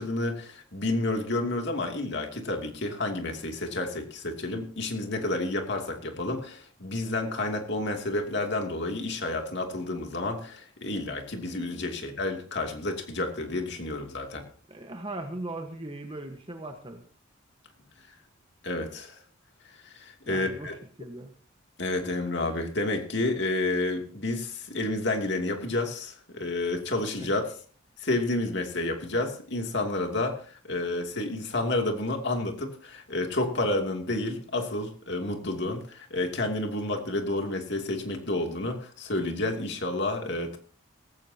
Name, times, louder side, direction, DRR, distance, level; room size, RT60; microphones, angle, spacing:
voice 1, 0.0-14.4 18.6-19.2 19.9-20.8 21.8-27.5 28.0-40.6, left 2 dB, 55° left, 3 dB, 2.8 m, -30 dB
voice 2, 14.7-17.0 20.3-20.7 21.0-21.3 27.2-27.3, right 2 dB, 25° right, 4 dB, 1.3 m, -38 dB
18.0 x 16.0 x 2.9 m, 0.43 s
head